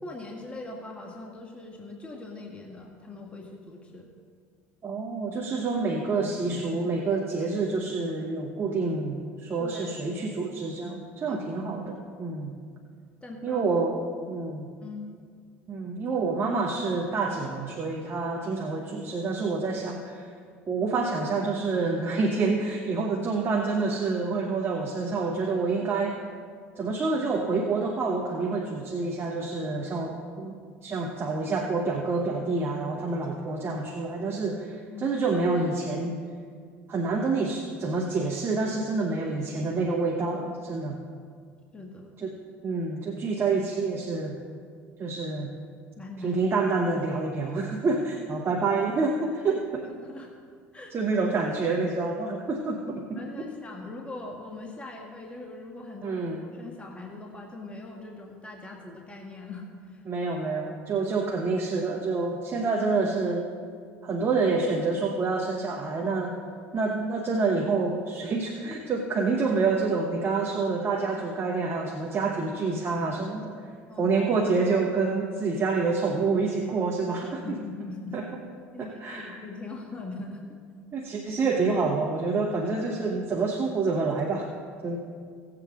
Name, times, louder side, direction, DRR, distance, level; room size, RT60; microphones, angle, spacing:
voice 1, 0.0-4.1 9.6-10.0 11.3-11.4 13.2-13.6 14.3-14.5 14.8-15.1 18.6-18.7 34.9-35.1 41.7-42.1 46.0-46.4 50.0-50.3 50.7-50.9 53.2-60.0 73.9-74.2 77.4-78.2 78.7-80.4, left 2 dB, 15° left, 0 dB, 1.5 m, -41 dB
voice 2, 4.8-12.5 13.4-14.0 14.3-14.7 15.7-20.3 20.7-26.2 26.8-30.5 30.8-36.2 36.9-41.0 42.2-42.3 42.6-44.4 45.0-45.5 46.2-49.9 50.9-53.5 56.0-56.4 60.1-63.4 64.0-66.4 66.7-73.7 74.0-77.6 78.1-78.3 78.8-79.4 80.9-84.5 84.8-85.0, right 3 dB, 35° right, 0 dB, 1.2 m, -27 dB
17.0 x 7.8 x 3.8 m, 2.1 s
hypercardioid pair, 75°, 7 cm